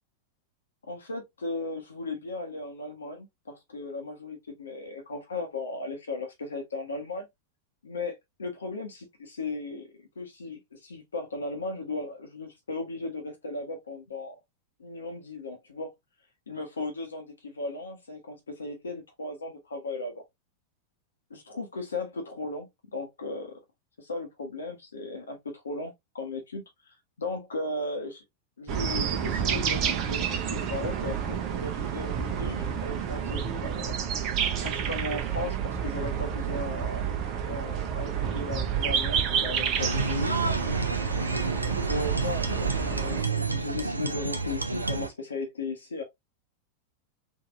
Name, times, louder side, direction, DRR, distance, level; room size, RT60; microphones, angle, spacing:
voice 1, 0.8-7.3 7.8-14.4 14.8-15.9 16.5-20.2 21.3-23.6 24.0-28.2 28.6-34.0 34.6-37.1 37.4-40.4 41.9-46.0, left 2 dB, 70° left, 1.0 m, -36 dB
sound 1, 28.7-43.2, right 8 dB, 35° right, 0.7 m, -30 dB
sound 2, 39.8-45.1, right 3 dB, 80° right, 0.5 m, -29 dB
3.7 x 2.7 x 2.4 m
figure-of-eight pair, 90°, 0 cm